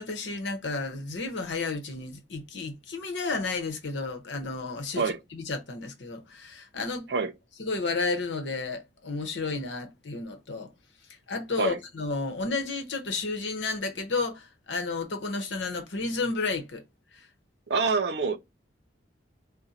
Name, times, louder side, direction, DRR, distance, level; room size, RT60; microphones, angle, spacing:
voice 1, 0.0-5.0 5.3-7.1 7.6-10.7 11.3-16.8, left 3 dB, 80° left, 0.9 m, -32 dB
voice 2, 17.7-18.4, right 4 dB, 65° right, 0.6 m, -26 dB
4.9 x 2.2 x 4.2 m
head